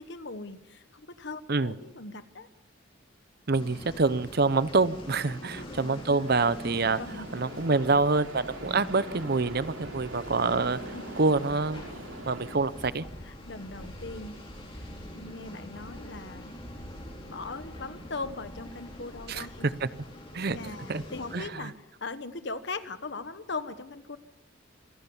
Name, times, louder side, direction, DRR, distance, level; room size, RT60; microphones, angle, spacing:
voice 1, 0.0-2.5 5.3-5.7 7.0-7.3 10.9-11.0 13.2-14.4 14.7-16.5 17.3-19.7 20.5-24.2, left 3 dB, 60° left, 12 dB, 1.2 m, -40 dB
sound 1, 3.5-21.5, left 1 dB, 25° left, 4.3 m, -44 dB
voice 2, 3.5-7.0 7.3-10.8 11.2-11.9 12.3-13.0 19.3-19.4 19.8-19.9 20.3-20.6 20.9-21.0 21.3-21.4, right 3 dB, 50° right, 16 dB, 0.7 m, -26 dB
sound 2, 6.3-12.6, right 2 dB, 75° right, 2.9 m, -43 dB
27.0 x 16.5 x 7.2 m, 0.98 s
head